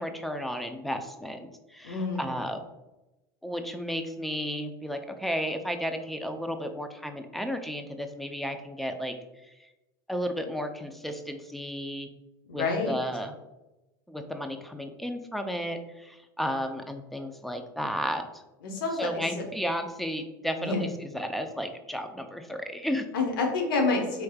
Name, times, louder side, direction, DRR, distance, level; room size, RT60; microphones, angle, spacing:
voice 1, 0.0-2.6 3.4-9.1 9.6-9.7 10.1-12.1 12.5-13.3 14.1-18.4 19.0-20.9 21.1-23.1, equal, ahead, 6 dB, 0.4 m, -33 dB
voice 2, 1.8-2.3 12.5-12.9 18.6-19.4 20.6-20.8 23.1-24.2, left 3 dB, 75° left, 1 dB, 1.0 m, -28 dB
4.5 x 3.2 x 2.3 m, 1.0 s
hypercardioid pair, 95°, 11 cm